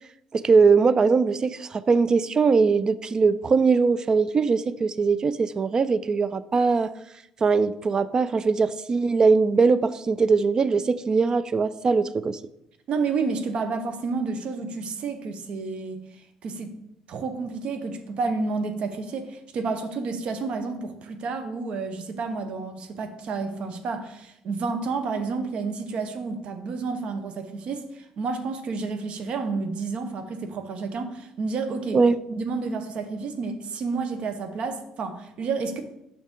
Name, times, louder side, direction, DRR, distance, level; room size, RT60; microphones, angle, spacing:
voice 1, 0.3-6.9 7.4-12.4 31.9-32.2, right 4 dB, 35° right, 16 dB, 0.4 m, -21 dB
voice 2, 12.9-16.0 16.4-16.7 17.1-32.0 32.3-35.8, right 4 dB, 60° right, 9 dB, 0.9 m, -30 dB
6.4 x 5.8 x 3.6 m, 0.82 s
cardioid pair, 95°, 2 cm